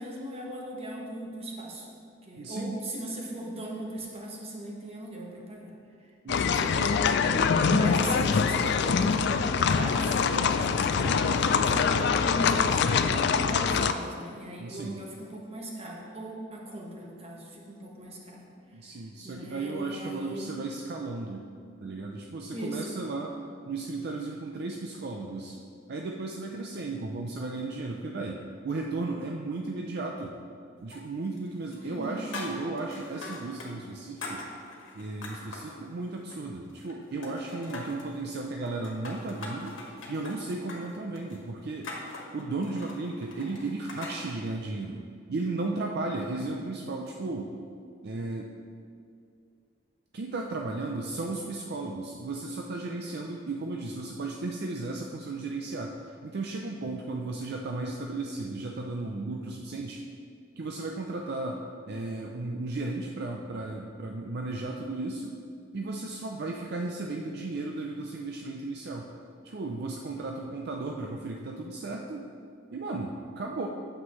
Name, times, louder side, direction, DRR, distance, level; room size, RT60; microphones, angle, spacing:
voice 1, 0.0-1.9 2.3-5.7 6.3-7.1 7.6-18.4 19.2-20.5 22.5-23.0 31.8-32.3, right 1 dB, 30° right, -2 dB, 1.3 m, -38 dB
voice 2, 2.4-2.8 6.2-6.6 14.6-15.0 18.7-21.5 21.8-23.3 23.7-25.6 25.9-30.4 30.8-34.4 34.9-41.9 42.3-45.0 45.3-47.5 48.0-48.5 50.1-60.0 60.6-61.6 61.9-65.3 65.7-69.1 69.4-72.3 72.7-73.7, right 3 dB, 60° right, 1 dB, 0.5 m, -35 dB
sound 1, 6.3-13.9, left 6 dB, 60° left, 0.4 m, -24 dB
sound 2, 30.9-31.5 31.7-33.7 34.0-35.7 36.2-37.0 37.2-38.1 38.7-44.2, left 2 dB, 90° left, 1.4 m, -42 dB
8.8 x 7.6 x 3.1 m, 2.4 s
head